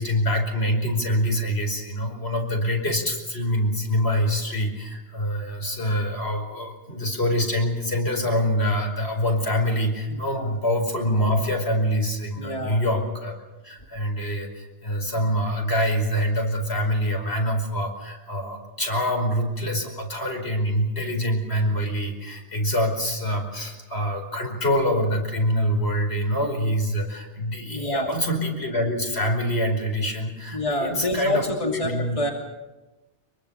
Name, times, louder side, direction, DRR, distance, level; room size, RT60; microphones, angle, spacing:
voice 1, 0.0-13.4 13.6-32.2, equal, 60° left, 3 dB, 5.3 m, -25 dB
voice 2, 10.1-10.5 12.4-12.8 27.6-28.1 30.5-32.3, left 1 dB, 30° left, 0 dB, 2.8 m, -27 dB
25.0 x 23.5 x 7.2 m, 1.1 s
omnidirectional pair, 1.2 m